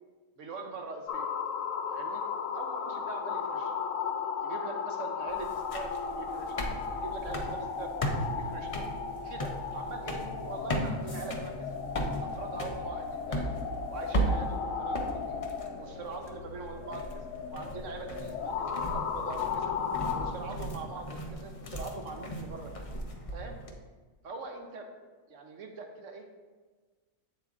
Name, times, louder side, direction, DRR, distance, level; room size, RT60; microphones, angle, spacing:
voice 1, 0.4-1.3 1.9-2.2 2.5-3.7 4.4-6.6 6.9-7.9 8.3-8.8 9.2-11.8 12.2-13.5 13.9-15.4 15.8-17.2 17.5-19.7 20.1-22.9 23.3-23.5 24.2-24.9 25.3-26.3, right 3 dB, 60° right, 3 dB, 1.1 m, -42 dB
sound 1, 1.1-20.3, left 6 dB, 65° left, 0.9 m, -36 dB
sound 2, 5.3-23.7, equal, 45° left, 0.4 m, -37 dB
8.3 x 7.5 x 2.5 m, 1.4 s
omnidirectional pair, 1.6 m